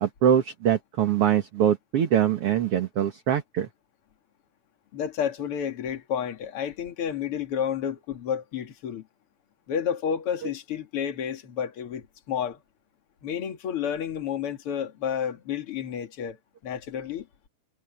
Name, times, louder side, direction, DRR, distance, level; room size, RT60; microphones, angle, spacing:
voice 1, 0.0-3.7 10.4-10.5, right 9 dB, 55° right, 1.9 m, -23 dB
voice 2, 4.9-9.1 9.7-12.6 13.2-16.4 16.6-17.3, left 8 dB, 45° left, 2.6 m, -30 dB
omnidirectional pair, 4.0 m